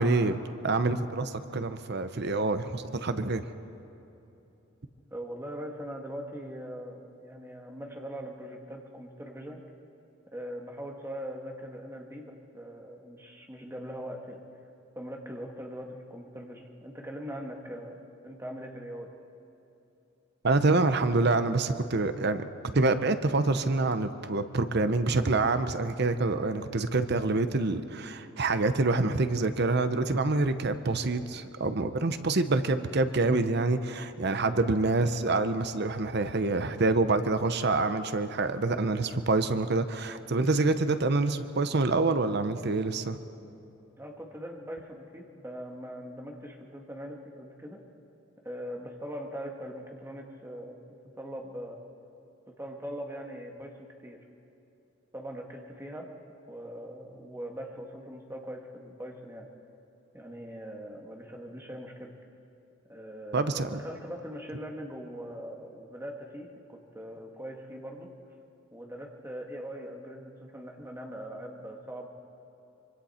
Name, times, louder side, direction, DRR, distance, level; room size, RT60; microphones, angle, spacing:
voice 1, 0.0-3.4 20.4-43.2 63.3-63.8, right 3 dB, 55° right, 10 dB, 0.9 m, -26 dB
voice 2, 5.1-9.6 10.3-14.4 15.0-19.1 44.0-47.8 48.4-50.8 51.2-51.8 52.5-54.2 55.1-56.1 56.5-59.5 60.1-62.1 62.9-68.1 68.7-72.1, equal, 15° right, 1 dB, 1.9 m, -41 dB
25.0 x 24.5 x 4.4 m, 2.9 s
head